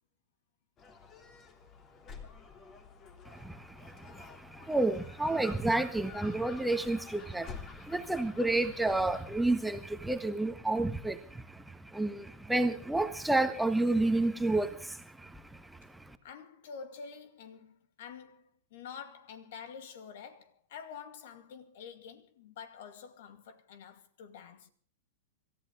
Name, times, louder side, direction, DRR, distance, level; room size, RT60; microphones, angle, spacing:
Gull seagull, 0.8-9.3, left 5 dB, 30° left, 3.3 m, -50 dB
voice 1, 3.2-16.2, right 2 dB, 5° right, 1.4 m, -31 dB
voice 2, 16.2-24.7, left 6 dB, 60° left, 2.3 m, -48 dB
27.0 x 14.5 x 3.7 m
hypercardioid pair, 100°, 0 cm